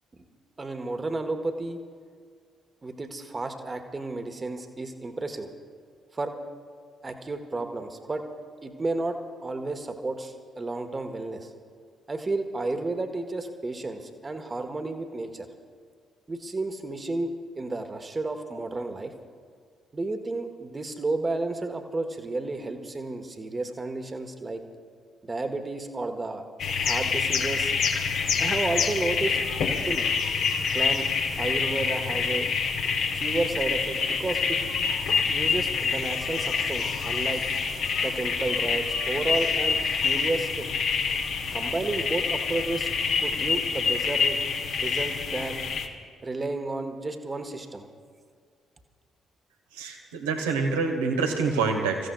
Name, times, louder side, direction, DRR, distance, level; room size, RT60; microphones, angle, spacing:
voice 1, 0.6-1.8 2.8-5.5 6.1-6.3 7.0-8.2 8.6-11.5 12.1-15.5 16.3-19.1 19.9-24.6 25.2-27.7 28.4-30.1 30.7-31.1 31.4-32.5 33.1-34.6 35.3-37.4 38.0-40.7 41.5-42.9 43.2-44.4 44.8-45.6 46.2-47.9, right 2 dB, 25° right, 7 dB, 1.2 m, -32 dB
sound 1, 26.6-45.9, left 5 dB, 55° left, 1.1 m, -27 dB
voice 2, 49.7-52.1, right 4 dB, 75° right, 2 dB, 1.3 m, -26 dB
29.0 x 15.5 x 2.3 m, 2.1 s
figure-of-eight pair, 45°, 0 cm